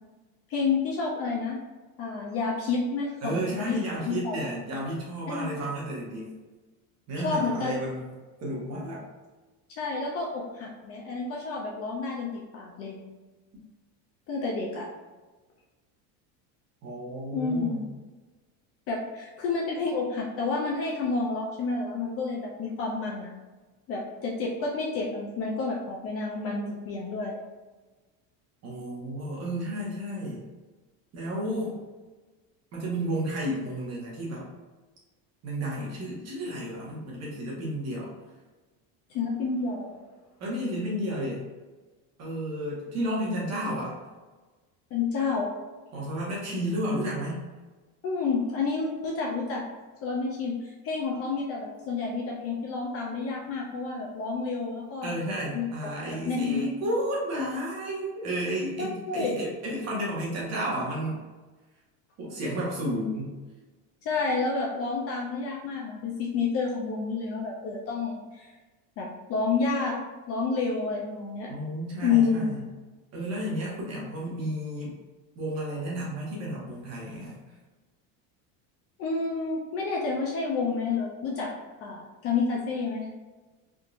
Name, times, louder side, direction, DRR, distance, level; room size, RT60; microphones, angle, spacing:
voice 1, 0.5-1.6 2.0-3.8 4.1-4.4 5.3-5.5 7.2-7.7 9.8-13.0 14.3-14.9 17.3-17.8 18.9-23.3 23.9-27.4 39.1-40.0 44.9-45.5 48.0-49.6 50.0-55.1 55.5-55.6 56.3-56.9 58.8-59.4 64.0-68.5 69.0-70.0 70.3-71.5 72.0-72.6 79.0-81.5 81.8-83.1, left 4 dB, 35° left, -2 dB, 0.4 m, -29 dB
voice 2, 3.2-6.3 7.1-8.0 8.4-9.0 16.8-17.8 28.6-30.5 31.1-31.8 32.7-34.5 35.4-38.1 40.4-41.4 42.2-43.9 45.9-47.4 55.0-61.2 62.2-63.4 71.5-72.6 73.1-74.9 75.4-77.4, equal, 40° right, -4 dB, 1.1 m, -32 dB
3.6 x 2.7 x 2.4 m, 1.2 s
cardioid pair, 145°, 42 cm